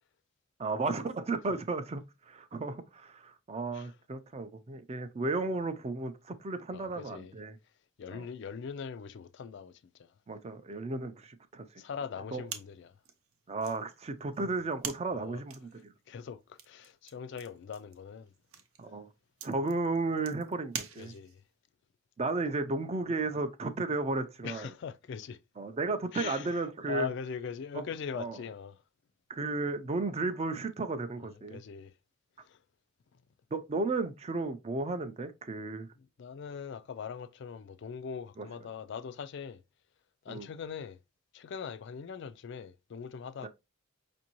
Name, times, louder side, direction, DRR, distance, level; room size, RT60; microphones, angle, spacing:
voice 1, 0.6-7.6 8.1-8.3 10.3-11.7 12.3-12.4 13.5-15.9 18.8-19.1 19.4-21.1 22.2-24.7 25.6-27.1 27.7-27.9 28.2-28.4 29.3-31.6 33.5-35.9 38.4-38.5 40.3-40.5 43.4-43.5, right 3 dB, 30° right, 0.4 m, -34 dB
voice 2, 6.7-7.3 8.0-10.1 11.8-12.9 15.1-15.4 16.1-18.3 21.0-21.4 24.4-25.4 26.1-28.8 31.2-31.9 32.4-32.6 36.2-39.6 40.2-41.0 41.3-43.5, left 6 dB, 55° left, 0.3 m, -41 dB
sound 1, 12.5-21.5, right 8 dB, 80° right, 0.6 m, -46 dB
5.2 x 2.6 x 2.9 m
head